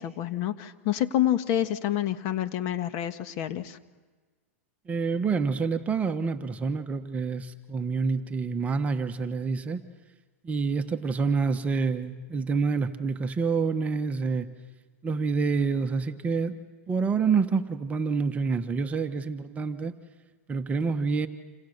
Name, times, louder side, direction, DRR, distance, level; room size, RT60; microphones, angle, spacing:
voice 1, 0.0-3.8, left 12 dB, 45° left, 10 dB, 1.6 m, -28 dB
voice 2, 4.9-9.8 10.4-14.5 15.0-16.6 16.9-19.9 20.5-21.3, right 5 dB, 20° right, 7 dB, 1.1 m, -27 dB
28.0 x 28.0 x 6.7 m, 1.4 s
supercardioid pair, 135°, 8 cm